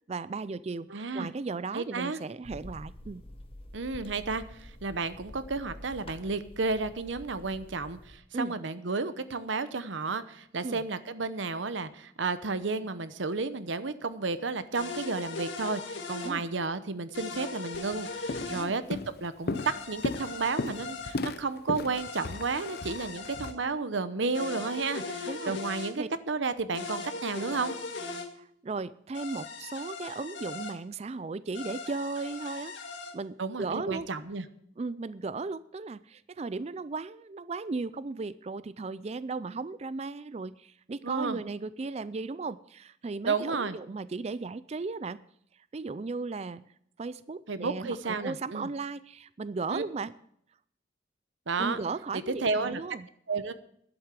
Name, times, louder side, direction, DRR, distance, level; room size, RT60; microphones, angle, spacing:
voice 1, 0.1-3.2 8.3-8.5 10.6-10.8 16.2-16.5 18.5-18.8 25.3-26.1 28.4-32.7 33.1-34.1 34.8-45.2 45.7-46.7 47.0-50.1 51.6-53.1, right 3 dB, 35° right, 16 dB, 0.4 m, -36 dB
voice 2, 0.9-1.3 1.7-2.2 3.7-27.8 33.4-34.4 41.0-41.4 43.2-43.8 47.5-48.7 49.7-49.8 51.5-51.8 52.1-52.8 53.3-53.5, right 4 dB, 75° right, 12 dB, 0.9 m, -32 dB
sound 1, 2.4-8.1, left 1 dB, 30° left, 1.4 m, -48 dB
sound 2, 14.7-16.3 17.1-18.7 19.5-21.1 21.9-23.5 24.3-25.9 26.7-28.3 29.1-30.7 31.5-33.1, left 4 dB, 75° left, 1.9 m, -39 dB
Walk footsteps, 17.7-17.9 18.3-18.6 18.9-23.5, left 2 dB, 55° left, 0.8 m, -35 dB
11.5 x 8.1 x 7.4 m, 0.68 s
head